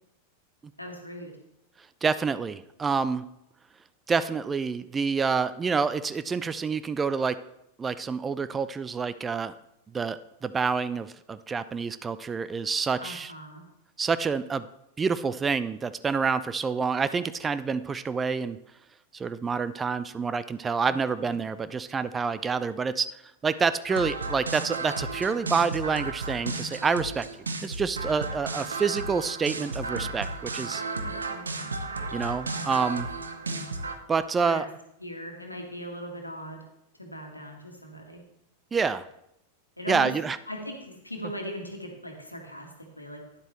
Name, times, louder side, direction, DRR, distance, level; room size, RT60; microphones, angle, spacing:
voice 1, 0.8-1.3 13.0-13.6 20.8-21.4 31.0-31.5 34.4-34.7 35.0-36.6 36.9-38.2 39.8-40.1 40.5-43.2, equal, 85° left, 2 dB, 1.5 m, -39 dB
voice 2, 2.0-3.2 4.1-7.4 7.8-9.5 9.9-13.3 14.0-14.6 15.0-18.6 19.1-23.1 23.4-27.3 27.6-30.8 32.1-33.1 34.1-34.7 38.7-39.1 39.9-40.4, right 5 dB, 15° right, 14 dB, 0.3 m, -27 dB
sound 1, 23.9-34.0, right 3 dB, 75° right, 0.7 m, -34 dB
9.9 x 7.9 x 3.1 m, 0.81 s
figure-of-eight pair, 90°, 0 cm